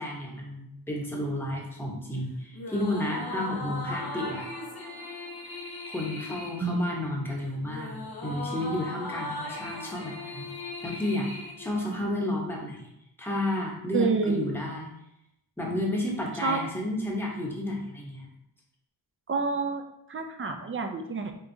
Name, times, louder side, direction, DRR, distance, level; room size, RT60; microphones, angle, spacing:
voice 1, 0.0-4.5 5.9-10.5 10.8-12.9 13.2-14.9 15.6-18.3, left 1 dB, 5° left, -2 dB, 0.9 m, -32 dB
sound 1, 2.5-12.3, left 2 dB, 55° left, 0.9 m, -38 dB
voice 2, 13.9-14.6 16.4-16.6 19.3-21.3, right 4 dB, 30° right, 5 dB, 0.5 m, -28 dB
4.5 x 3.6 x 2.6 m, 0.82 s
wide cardioid pair, 90°, 45 cm